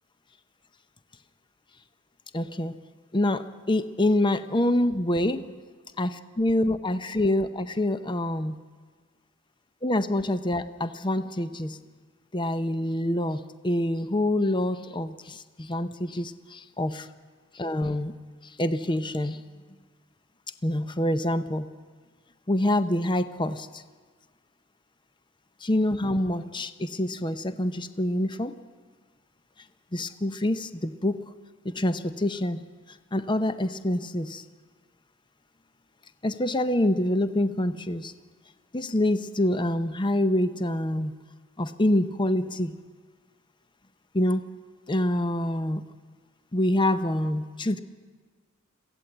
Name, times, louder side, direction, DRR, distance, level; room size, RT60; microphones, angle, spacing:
voice 1, 2.3-2.8 3.1-5.5 6.0-8.6 9.8-11.8 12.3-17.1 17.5-18.2 18.4-19.4 20.6-21.7 22.5-23.8 25.6-28.5 29.9-31.3 31.6-32.6 32.9-34.4 36.2-38.1 38.7-41.1 41.6-42.8 44.1-44.5 44.9-45.8 46.5-47.8, left 1 dB, 25° left, 11 dB, 0.7 m, -26 dB
22.5 x 15.0 x 7.9 m, 1.5 s
head